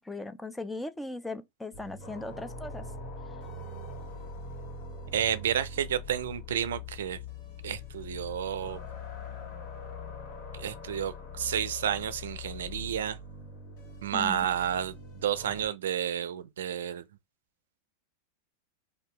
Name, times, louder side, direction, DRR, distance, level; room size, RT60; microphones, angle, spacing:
voice 1, 0.0-2.9 14.1-14.5, left 2 dB, 5° left, 0.3 m, -38 dB
sound 1, 1.7-15.7, left 3 dB, 55° left, 1.0 m, -42 dB
voice 2, 5.1-7.2 7.6-8.8 10.5-13.2 14.0-14.9 15.2-17.0, right 9 dB, 85° right, 0.3 m, -31 dB
2.8 x 2.2 x 3.2 m
hypercardioid pair, 115°, 0 cm